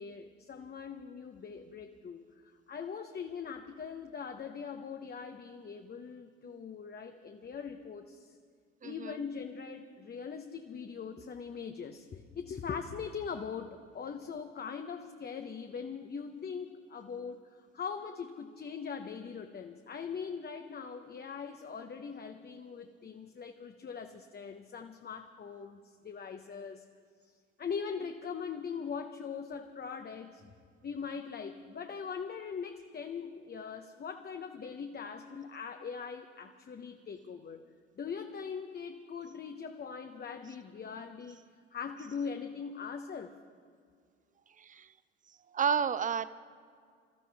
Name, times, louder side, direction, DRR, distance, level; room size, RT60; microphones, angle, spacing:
voice 1, 0.0-2.2 2.7-8.4 8.8-26.8 27.3-30.5 30.8-37.6 38.0-41.4 41.7-43.3, left 6 dB, 25° left, 6 dB, 1.1 m, -41 dB
voice 2, 8.8-9.2 44.6-44.9 45.3-46.3, right 7 dB, 20° right, 16 dB, 0.7 m, -32 dB
27.0 x 14.5 x 3.5 m, 2.1 s
figure-of-eight pair, 60°, 36 cm